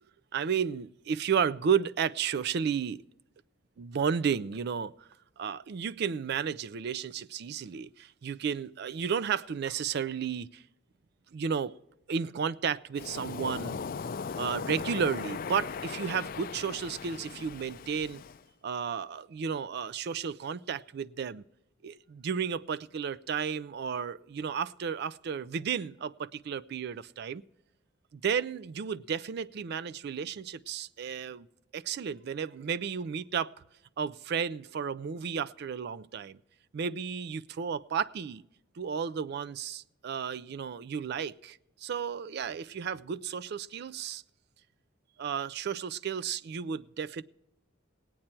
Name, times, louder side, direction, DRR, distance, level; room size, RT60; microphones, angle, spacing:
voice 1, 0.3-3.0 3.8-5.1 5.4-10.6 11.3-11.7 12.1-13.8 14.4-18.2 18.6-21.4 21.8-27.4 28.1-31.5 31.7-33.5 34.0-36.4 36.7-38.4 38.8-44.2 45.2-47.2, right 7 dB, 55° right, 0.3 m, -33 dB
Waves surf, 13.0-18.4, left 5 dB, 45° left, 0.4 m, -38 dB
18.0 x 8.7 x 4.4 m
head